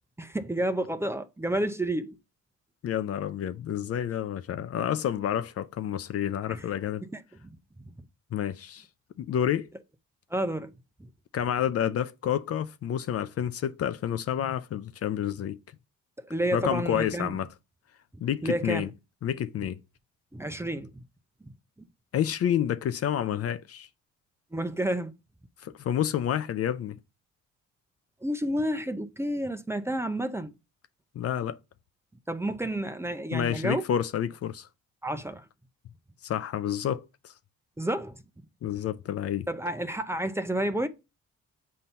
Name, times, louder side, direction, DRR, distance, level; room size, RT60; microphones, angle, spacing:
voice 1, 0.2-2.2 6.5-6.6 7.0-7.5 10.3-10.7 16.2-17.3 18.4-18.9 20.3-20.9 21.4-21.5 24.5-25.1 28.2-30.5 32.3-33.8 35.0-35.4 37.8-38.2 39.5-40.9, right 1 dB, 10° right, 0.6 m, -30 dB
voice 2, 2.8-7.0 8.3-8.9 9.2-9.7 11.3-15.6 16.5-17.5 18.2-18.9 19.2-19.8 22.1-23.9 25.6-27.0 31.2-31.6 33.3-34.7 36.2-37.3 38.6-39.5, left 10 dB, 50° left, 0.5 m, -29 dB
7.4 x 2.8 x 5.5 m
cardioid pair, 90°, 30 cm